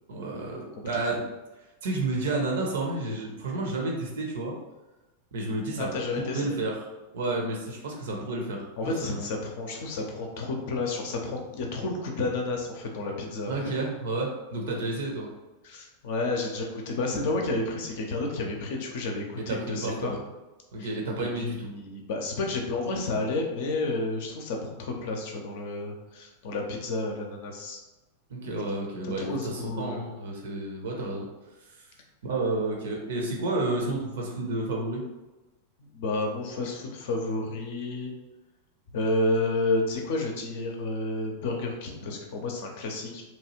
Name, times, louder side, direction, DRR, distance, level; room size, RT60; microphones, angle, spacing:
voice 1, 0.1-1.2 1.8-4.5 5.3-5.9 6.2-6.8 7.1-8.6 9.0-9.2 13.5-15.3 19.5-20.1 20.7-21.7 28.3-31.3 32.2-35.0, right 2 dB, 60° right, 0 dB, 0.7 m, -30 dB
voice 2, 0.8-1.2 5.8-6.6 8.8-13.7 15.6-20.1 20.8-20.9 21.2-27.8 29.0-30.1 35.8-38.1 38.9-43.2, left 2 dB, 50° left, 1 dB, 0.6 m, -31 dB
2.9 x 2.3 x 2.9 m, 1.1 s
figure-of-eight pair, 90°, 0 cm